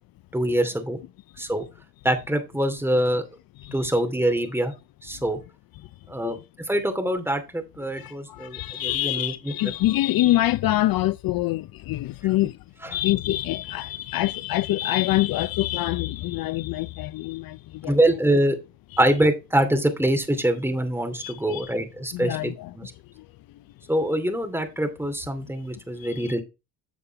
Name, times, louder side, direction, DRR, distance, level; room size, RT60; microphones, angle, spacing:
voice 1, 0.3-1.0 1.4-1.6 2.0-3.3 3.7-4.7 5.0-5.4 6.1-6.4 6.7-9.7 12.8-13.0 17.8-18.6 19.0-22.9 23.9-26.4, right 1 dB, 5° right, 2.5 m, -24 dB
voice 2, 8.0-12.6 12.9-18.0 21.2-21.7 22.1-22.7 26.0-26.3, left 15 dB, 60° left, 0.5 m, -25 dB
8.4 x 7.0 x 3.4 m
cardioid pair, 100°, 40 cm